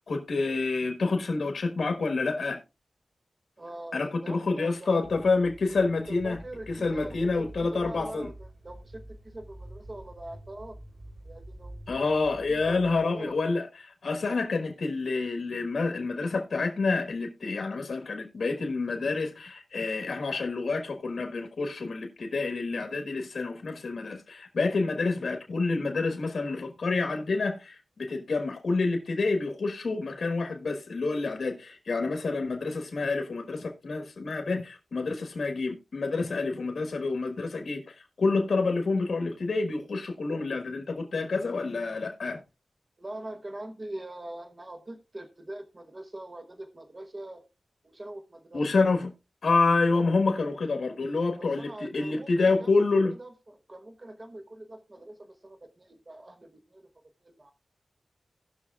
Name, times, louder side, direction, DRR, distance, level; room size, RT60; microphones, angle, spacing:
voice 1, 0.0-2.6 3.9-6.4 6.7-8.3 11.9-42.4 48.5-49.1 49.4-53.1, left 3 dB, 90° left, 1.4 m, -28 dB
voice 2, 3.6-5.0 6.1-10.8 11.2-12.0 12.5-13.4 43.0-47.5 47.8-48.6 51.4-56.8 57.2-57.5, right 1 dB, 35° right, 1.1 m, -43 dB
sound 1, 5.0-13.4, right 1 dB, 80° right, 4.0 m, -47 dB
18.5 x 6.2 x 2.4 m
wide cardioid pair, 110°, 0 cm